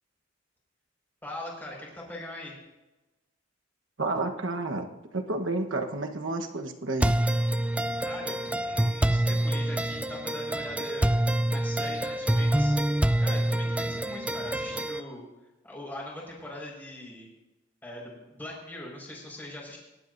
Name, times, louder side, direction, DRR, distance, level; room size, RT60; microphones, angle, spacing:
voice 1, 1.2-2.6 8.0-11.2 11.5-15.2 15.6-17.3 17.8-19.8, left 1 dB, 10° left, -2 dB, 5.2 m, -41 dB
voice 2, 4.0-7.2, right 2 dB, 90° right, 4 dB, 1.2 m, -31 dB
sound 1, 7.0-15.0, right 1 dB, 5° right, 0.4 m, -26 dB
26.0 x 12.5 x 2.6 m, 1.1 s
head